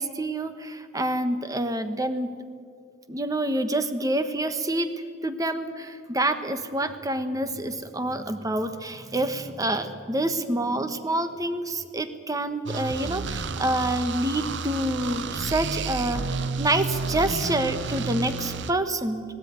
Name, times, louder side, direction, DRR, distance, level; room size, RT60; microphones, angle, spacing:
voice 1, 0.0-2.3 3.1-4.9 5.2-19.2, right 1 dB, 20° right, 9 dB, 1.3 m, -27 dB
sound 1, 12.7-18.7, right 4 dB, 60° right, 0.8 m, -31 dB
19.5 x 17.5 x 9.6 m, 2.2 s
head